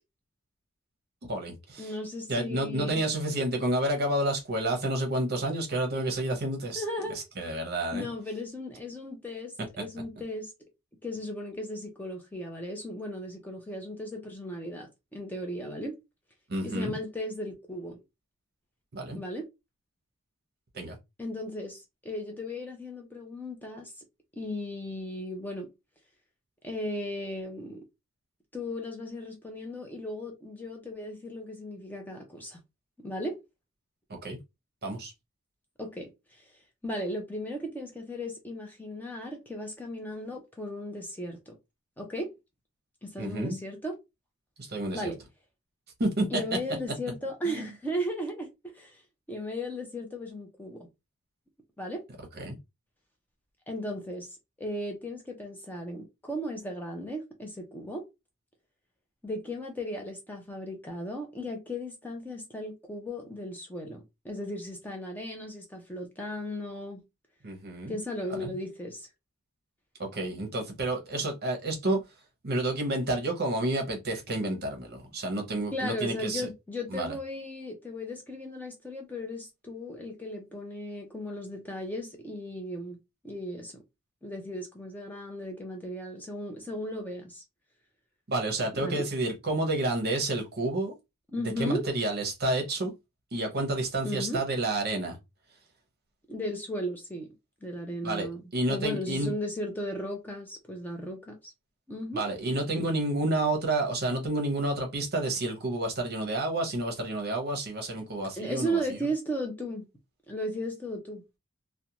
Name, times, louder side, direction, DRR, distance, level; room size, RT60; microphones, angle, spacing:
voice 1, 1.2-1.9 2.3-6.8 7.4-8.1 16.5-17.0 18.9-19.2 20.7-21.0 34.2-34.4 34.8-35.1 43.2-43.6 44.6-45.1 46.0-46.4 47.5-47.7 52.4-52.6 67.4-68.0 68.3-68.5 70.0-72.0 72.4-76.5 76.9-77.1 88.3-90.9 91.4-92.9 93.3-95.2 98.0-99.3 102.1-109.0, right 1 dB, 50° right, 0.8 m, -30 dB
voice 2, 1.8-3.0 6.7-7.2 7.9-10.5 11.0-16.0 16.6-18.0 19.1-19.5 21.2-24.0 24.4-25.7 26.6-27.8 28.5-32.6 33.0-33.4 35.8-36.5 36.8-41.6 42.0-42.3 43.0-43.9 44.9-45.2 46.3-49.0 49.3-50.9 51.8-52.0 53.7-54.3 54.6-58.0 59.2-67.0 67.9-69.1 75.7-83.0 83.2-83.8 84.2-87.4 88.8-89.1 91.3-91.9 94.0-94.4 96.3-97.3 97.6-98.4 98.7-101.5 101.9-102.2 108.4-109.9 110.3-111.2, equal, 10° left, 0.5 m, -36 dB
2.5 x 2.1 x 2.8 m
head